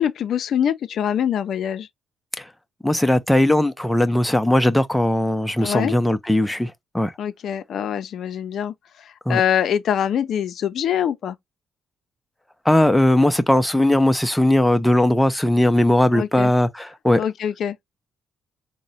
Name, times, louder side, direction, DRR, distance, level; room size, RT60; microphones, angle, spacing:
voice 1, 0.0-1.9 5.6-5.9 7.2-11.4 16.1-16.5 17.2-18.0, left 9 dB, 65° left, 0.4 m, -24 dB
voice 2, 2.8-7.1 9.3-9.4 12.7-17.2, left 1 dB, 5° left, 0.4 m, -18 dB
3.7 x 2.0 x 3.9 m
cardioid pair, 90°, 0 cm